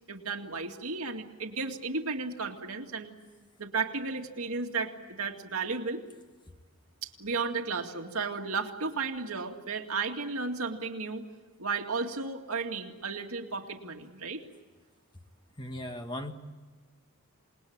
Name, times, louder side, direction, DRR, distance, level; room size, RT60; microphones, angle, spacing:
voice 1, 0.1-3.1 3.6-4.9 5.2-6.0 7.0-11.3 11.6-14.4, right 4 dB, 80° right, 3 dB, 2.2 m, -34 dB
voice 2, 15.6-16.3, left 1 dB, 20° left, 5 dB, 1.7 m, -37 dB
28.0 x 20.0 x 8.8 m, 1.3 s
head